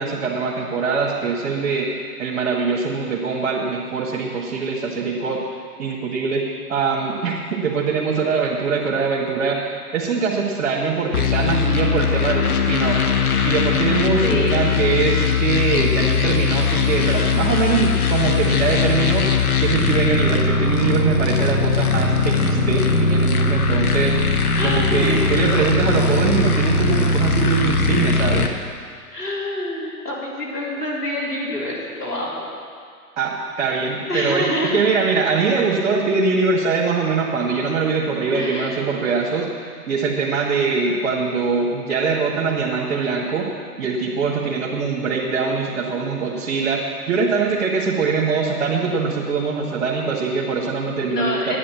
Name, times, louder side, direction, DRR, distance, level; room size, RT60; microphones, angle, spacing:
voice 1, 0.0-1.9 2.2-5.4 5.8-6.4 6.7-9.7 9.9-13.0 13.4-19.2 19.6-28.5 33.2-34.4 34.7-43.5 43.8-51.6, right 5 dB, 50° right, -4 dB, 2.0 m, -22 dB
sound 1, 11.1-28.5, left 4 dB, 70° left, 1.2 m, -20 dB
voice 2, 14.2-14.7 24.5-25.3 29.1-32.4 34.1-34.8 35.3-35.4 38.3-38.8 51.1-51.6, left 1 dB, 90° left, -6 dB, 3.8 m, -26 dB
11.0 x 9.3 x 7.2 m, 2.1 s
figure-of-eight pair, 110°, 45 cm